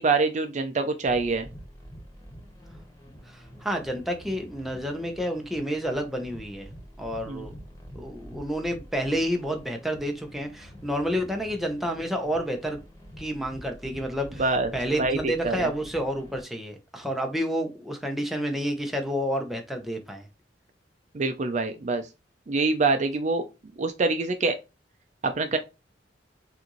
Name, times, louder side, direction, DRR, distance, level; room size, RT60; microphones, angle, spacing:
voice 1, 0.0-1.5 7.3-7.5 14.4-14.7 15.0-15.7 21.1-22.1 22.5-23.5 23.8-24.6 25.2-25.6, right 3 dB, 40° right, 0.5 m, -25 dB
sound 1, 1.1-16.4, equal, 15° left, 1.4 m, -46 dB
voice 2, 3.3-6.7 7.0-7.5 7.9-12.8 13.2-14.4 14.7-20.3, equal, ahead, 0.8 m, -30 dB
6.3 x 2.6 x 3.0 m
head